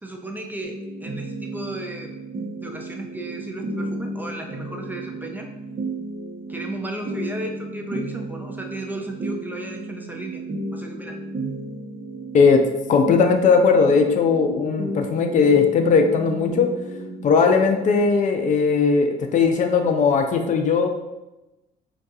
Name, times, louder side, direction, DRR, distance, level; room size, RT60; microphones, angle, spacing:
voice 1, 0.0-2.1 2.6-5.5 6.5-10.4 10.7-11.2, right 2 dB, 10° right, 2 dB, 0.4 m, -34 dB
sound 1, 0.6-18.0, right 2 dB, 35° right, 0.8 m, -34 dB
voice 2, 12.9-16.7 17.2-20.9, left 5 dB, 50° left, 5 dB, 0.5 m, -18 dB
4.5 x 2.3 x 2.7 m, 0.99 s
cardioid pair, 110°, 17 cm